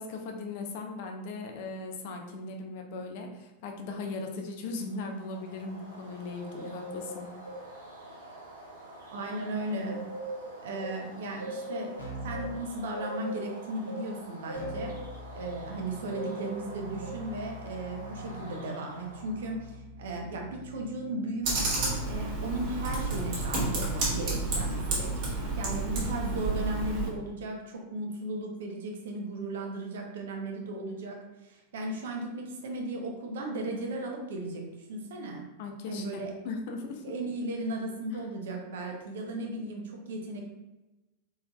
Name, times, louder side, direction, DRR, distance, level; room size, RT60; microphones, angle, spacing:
voice 1, 0.0-7.3 35.6-37.0 38.1-38.3, left 3 dB, 50° left, 3 dB, 0.6 m, -38 dB
sound 1, 4.9-19.5, right 1 dB, 80° right, 1.1 m, -42 dB
voice 2, 9.1-10.0 10.6-11.9 12.2-15.0 15.3-34.6 34.9-35.4 35.9-36.3 37.0-40.5, right 2 dB, 60° right, 1 dB, 0.8 m, -36 dB
Keyboard (musical), 12.0-12.5 14.5-23.4, equal, 75° left, 1.0 m, -45 dB
Computer keyboard, 21.4-27.1, right 2 dB, 45° right, 1.4 m, -30 dB
4.2 x 3.8 x 2.2 m, 1.0 s
figure-of-eight pair, 90°, 0 cm